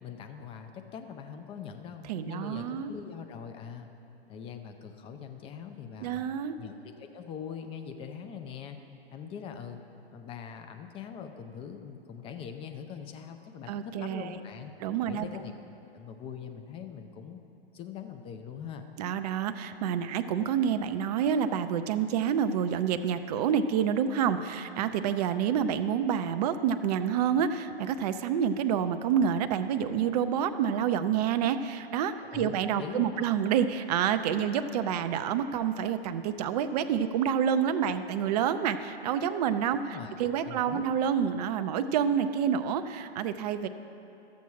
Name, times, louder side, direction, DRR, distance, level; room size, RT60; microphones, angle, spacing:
voice 1, 0.0-3.9 4.3-6.2 6.6-8.8 9.1-9.8 10.1-14.7 15.1-15.5 15.9-17.4 17.7-18.8 32.2-33.2 39.9-40.1 40.4-40.9, left 7 dB, 15° left, 6 dB, 0.5 m, -42 dB
voice 2, 2.1-2.9 6.0-6.6 13.7-14.4 14.8-15.3 19.0-43.7, right 8 dB, 40° right, 10 dB, 0.5 m, -28 dB
13.5 x 7.2 x 4.7 m, 2.8 s
figure-of-eight pair, 115°, 32 cm